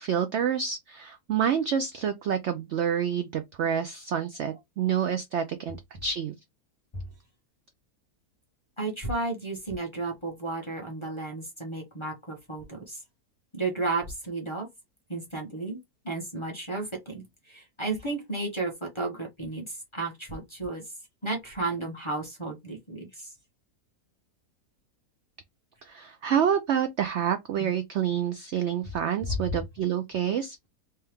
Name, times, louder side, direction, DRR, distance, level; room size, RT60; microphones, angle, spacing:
voice 1, 0.0-5.8 6.0-6.3 25.8-30.6, right 8 dB, 75° right, 0.6 m, -28 dB
voice 2, 8.8-13.0 13.5-14.7 15.1-15.8 16.0-17.2 17.5-20.8 21.2-23.3 27.6-27.7, right 3 dB, 20° left, 0.8 m, -33 dB
3.4 x 2.9 x 3.4 m
omnidirectional pair, 1.7 m